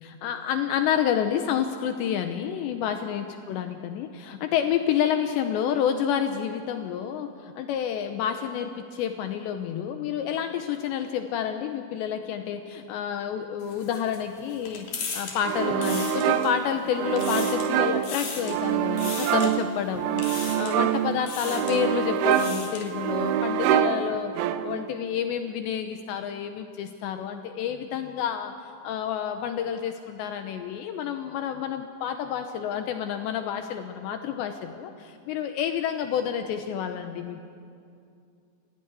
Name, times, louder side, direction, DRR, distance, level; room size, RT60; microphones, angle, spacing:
voice 1, 0.0-14.9 15.1-24.3 24.6-28.5 28.8-37.4, left 9 dB, 80° left, 6 dB, 3.0 m, -29 dB
sound 1, 13.6-16.7 17.0-17.7 18.0-18.6 19.0-19.5 20.2-20.8 21.2-21.8 22.2-22.9, left 5 dB, 50° left, 4.4 m, -37 dB
sound 2, 15.4-24.9, right 9 dB, 80° right, 3.2 m, -26 dB
29.5 x 16.0 x 9.8 m, 2.5 s
omnidirectional pair, 5.5 m